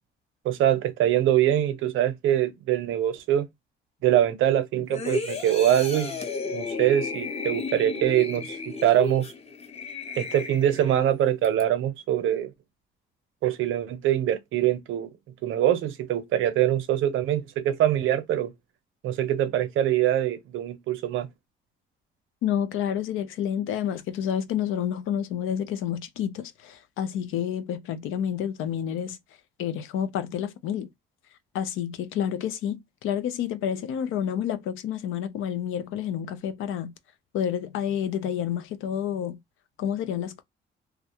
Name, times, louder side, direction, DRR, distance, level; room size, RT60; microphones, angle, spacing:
voice 1, 0.4-3.5 4.0-6.2 6.5-9.3 10.2-12.5 13.4-15.1 15.4-18.5 19.0-21.3, right 11 dB, 80° right, 0.6 m, -23 dB
sound 1, 4.9-11.0 11.4-11.6, left 4 dB, 30° left, 0.7 m, -34 dB
voice 2, 22.4-29.2 29.6-30.9 31.5-36.9 37.3-39.4 39.8-40.4, left 9 dB, 85° left, 0.5 m, -29 dB
2.4 x 2.1 x 2.8 m
cardioid pair, 90°, 20 cm